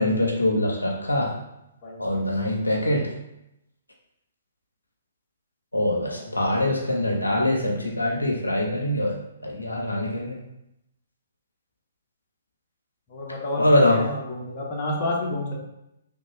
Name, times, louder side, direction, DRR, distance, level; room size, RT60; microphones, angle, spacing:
voice 1, 0.0-1.4 2.0-3.1 5.7-9.2 9.4-10.4 13.6-14.0, left 1 dB, 90° left, -1 dB, 0.6 m, -23 dB
voice 2, 1.8-2.2 6.2-6.3 13.1-15.7, left 1 dB, 40° left, -2 dB, 0.8 m, -30 dB
3.1 x 2.3 x 2.9 m, 0.85 s
figure-of-eight pair, 130°, 0 cm